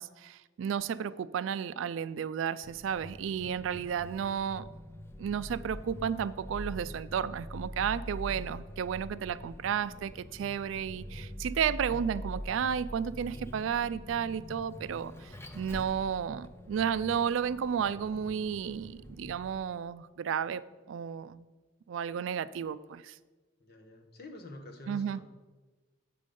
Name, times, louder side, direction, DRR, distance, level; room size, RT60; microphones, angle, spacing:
voice 1, 0.0-4.7 5.2-20.6 20.9-21.5 21.9-23.2 24.9-25.2, right 7 dB, 75° right, 15 dB, 0.3 m, -33 dB
Vehicle, 2.6-19.6, equal, 15° left, 0.6 m, -44 dB
voice 2, 23.6-25.2, left 1 dB, 55° left, 3 dB, 1.1 m, -47 dB
8.3 x 5.2 x 5.3 m, 1.2 s
head